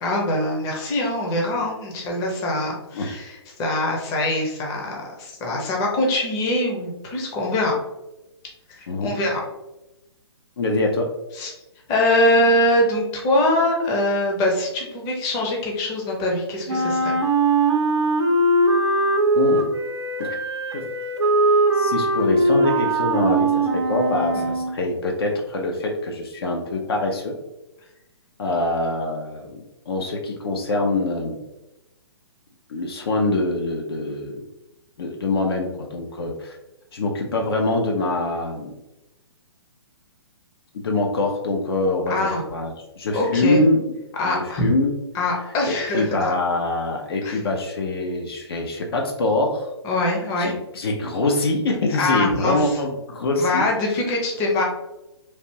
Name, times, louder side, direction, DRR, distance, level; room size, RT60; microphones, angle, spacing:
voice 1, 0.0-7.7 8.8-9.4 11.4-11.5 11.9-17.2 24.3-24.5 42.1-42.4 43.1-43.6 44.2-44.7 45.1-46.3 47.2-47.4 49.8-50.5 51.9-52.7 53.4-54.6, left 1 dB, 20° left, -1 dB, 0.7 m, -23 dB
voice 2, 10.6-11.1 19.4-19.7 20.2-20.3 20.7-20.8 21.7-27.4 28.4-31.4 32.7-34.3 35.0-36.6 36.9-38.8 40.7-43.9 44.2-44.9 45.4-49.7 50.4-53.7, left 2 dB, 60° left, 1 dB, 0.6 m, -24 dB
Wind instrument woodwind instrument, 16.7-24.8, right 2 dB, 70° right, 0.6 m, -20 dB
3.3 x 2.5 x 2.8 m, 0.96 s
figure-of-eight pair, 125°, 15 cm